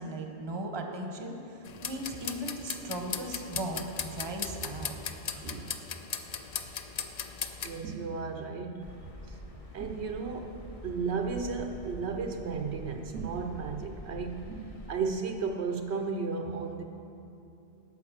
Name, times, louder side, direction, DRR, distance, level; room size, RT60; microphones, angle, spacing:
voice 1, 0.0-4.9 5.5-5.6, right 1 dB, 25° right, 3 dB, 0.9 m, -37 dB
sound 1, 1.6-7.8, left 6 dB, 50° left, 0.5 m, -38 dB
voice 2, 5.3-5.7 7.6-9.0 9.3-9.4 9.7-16.8, right 5 dB, 70° right, 5 dB, 0.9 m, -34 dB
sound 2, 8.8-14.9, equal, 35° left, 0.9 m, -46 dB
12.0 x 5.5 x 7.4 m, 2.8 s
omnidirectional pair, 1.2 m